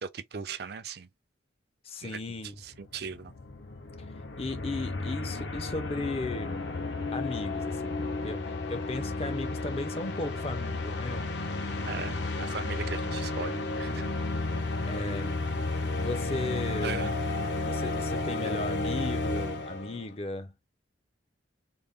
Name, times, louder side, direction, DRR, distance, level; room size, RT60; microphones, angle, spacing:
voice 1, 0.0-1.1 2.0-2.2 2.6-3.3 11.9-14.1 16.8-17.1, right 5 dB, 55° right, 0.5 m, -38 dB
voice 2, 1.8-2.6 4.4-6.8 7.1-11.3 14.9-15.4 16.0-17.1 17.6-20.5, left 2 dB, 30° left, 0.5 m, -36 dB
sound 1, 2.3-2.4 2.6-20.1, left 2 dB, 60° left, 0.8 m, -32 dB
3.9 x 2.1 x 3.5 m
head